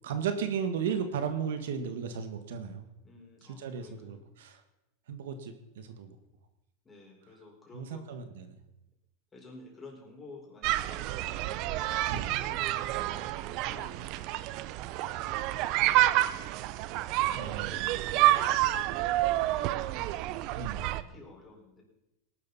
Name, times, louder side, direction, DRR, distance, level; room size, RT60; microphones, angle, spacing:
voice 1, 0.0-2.8 3.6-4.6 5.1-6.2 7.7-8.6 12.1-12.4 17.3-18.0 20.5-20.9, right 7 dB, 80° right, 8 dB, 1.6 m, -35 dB
voice 2, 3.0-4.3 6.8-8.0 9.3-11.3 12.1-14.2 14.7-14.8 15.1-16.8 17.4-19.7 21.0-21.8, left 3 dB, 20° left, -2 dB, 4.7 m, -52 dB
sound 1, 10.6-21.0, right 15 dB, 50° right, 0.6 m, -29 dB
18.5 x 12.0 x 4.2 m, 0.92 s
supercardioid pair, 120°, 0 cm